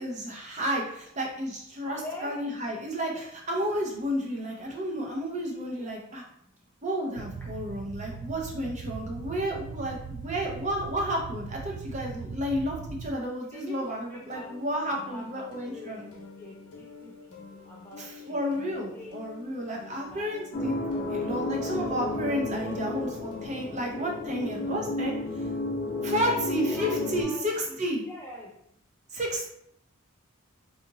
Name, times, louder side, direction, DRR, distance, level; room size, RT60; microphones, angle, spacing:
voice 1, 0.0-6.2 6.8-16.1 18.0-20.8 21.1-25.5 26.0-28.0 29.1-29.5, equal, 35° right, -1 dB, 0.6 m, -31 dB
voice 2, 1.9-2.5 5.8-5.9 7.4-7.5 13.5-13.8 14.1-14.5 14.9-16.1 16.4-17.1 17.5-19.1 19.8-20.5 21.0-21.3 26.2-28.5, left 1 dB, 10° left, -2 dB, 0.4 m, -45 dB
sound 1, 7.1-13.1, right 5 dB, 85° right, 0.3 m, -40 dB
sound 2, 14.2-24.9, left 4 dB, 85° left, 0.8 m, -48 dB
sound 3, 20.5-27.2, left 2 dB, 45° left, 0.7 m, -32 dB
2.8 x 2.4 x 3.8 m, 0.74 s
head